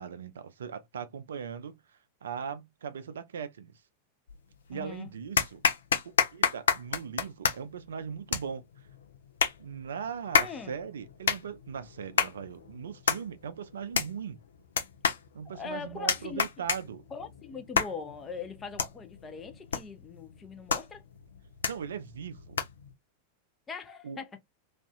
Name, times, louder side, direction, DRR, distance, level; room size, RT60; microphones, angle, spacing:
voice 1, 0.0-1.8 2.2-3.7 4.7-5.6 6.0-8.6 9.6-14.4 15.3-17.0 21.6-22.6 24.0-24.2, right 7 dB, 65° right, 0.3 m, -39 dB
sound 1, 4.3-4.8 5.4-22.9, left 6 dB, 65° left, 0.5 m, -31 dB
voice 2, 4.7-5.1 10.4-10.7 15.5-16.4 17.1-21.0 23.7-24.4, left 5 dB, 20° left, 0.5 m, -41 dB
2.4 x 2.3 x 2.2 m
figure-of-eight pair, 90°, 0 cm